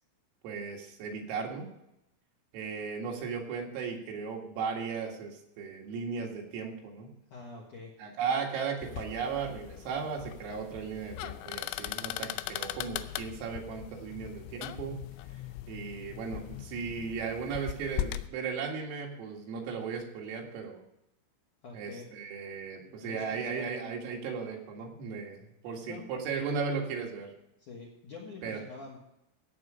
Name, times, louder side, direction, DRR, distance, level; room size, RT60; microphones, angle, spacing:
voice 1, 0.4-1.7 2.5-7.1 8.0-15.0 15.7-20.8 21.7-27.3 28.4-28.6, right 5 dB, 80° right, 0 dB, 4.6 m, -36 dB
voice 2, 7.3-7.9 21.6-22.1 22.8-23.6 25.9-26.1 27.6-29.0, left 3 dB, 65° left, -2 dB, 2.0 m, -46 dB
sound 1, 8.8-18.3, left 14 dB, 85° left, 3.3 m, -39 dB
16.5 x 8.2 x 5.0 m, 0.83 s
omnidirectional pair, 6.0 m